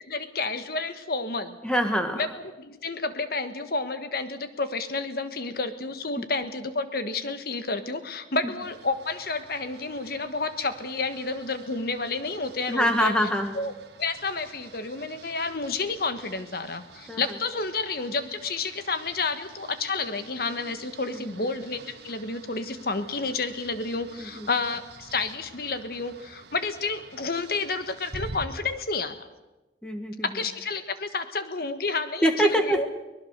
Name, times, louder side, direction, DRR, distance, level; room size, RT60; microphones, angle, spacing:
voice 1, 0.1-1.6 2.1-13.1 13.5-13.7 14.0-29.1 30.2-32.9, left 3 dB, 55° left, 10 dB, 1.3 m, -30 dB
voice 2, 1.6-2.2 12.7-13.5 17.1-17.2 21.1-21.5 24.2-24.5 29.8-30.4 32.2-32.9, equal, 5° left, 5 dB, 1.9 m, -25 dB
sound 1, 8.6-28.5, right 3 dB, 65° right, 1.7 m, -48 dB
23.5 x 19.5 x 6.7 m, 1.1 s
head